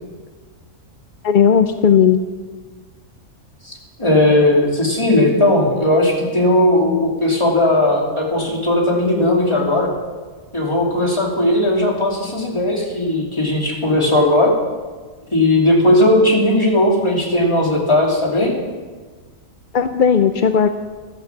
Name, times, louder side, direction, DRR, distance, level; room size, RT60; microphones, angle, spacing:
voice 1, 1.2-2.2 19.7-20.7, left 7 dB, 55° left, 8 dB, 0.6 m, -14 dB
voice 2, 4.0-9.9 10.5-14.5 15.3-18.5, left 1 dB, 20° left, -2 dB, 3.0 m, -16 dB
13.0 x 12.0 x 7.3 m, 1.4 s
omnidirectional pair, 1.4 m